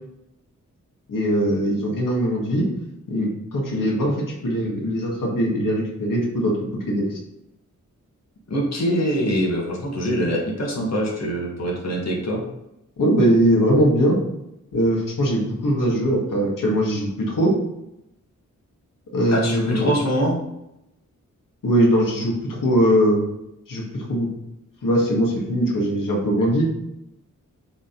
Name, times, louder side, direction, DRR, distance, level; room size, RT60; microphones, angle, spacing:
voice 1, 1.1-2.7 3.1-7.1 13.0-14.2 14.7-17.5 19.1-19.9 21.6-23.2 23.7-24.3 24.8-26.7, equal, 90° left, -2 dB, 1.9 m, -21 dB
voice 2, 8.5-12.4 19.3-20.4, equal, 55° left, -2 dB, 1.6 m, -23 dB
8.8 x 4.0 x 3.9 m, 0.86 s
wide cardioid pair, 120°, 32 cm